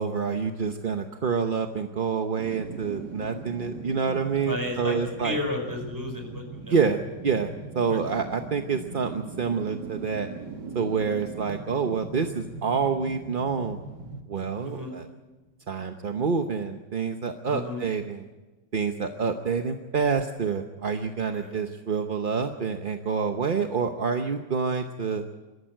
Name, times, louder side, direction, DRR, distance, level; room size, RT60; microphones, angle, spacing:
voice 1, 0.0-5.4 6.7-10.3 10.7-13.8 14.3-15.1 15.7-18.2 18.7-25.2, right 5 dB, 40° right, 6 dB, 0.8 m, -27 dB
sound 1, 2.4-15.4 15.8-15.9, right 3 dB, 75° right, 2.4 m, -40 dB
voice 2, 4.4-6.8 7.9-8.2 14.6-14.9 17.4-17.8 21.3-21.6, left 1 dB, 10° right, 2 dB, 5.0 m, -33 dB
24.0 x 13.5 x 9.1 m, 1.2 s
omnidirectional pair, 1.9 m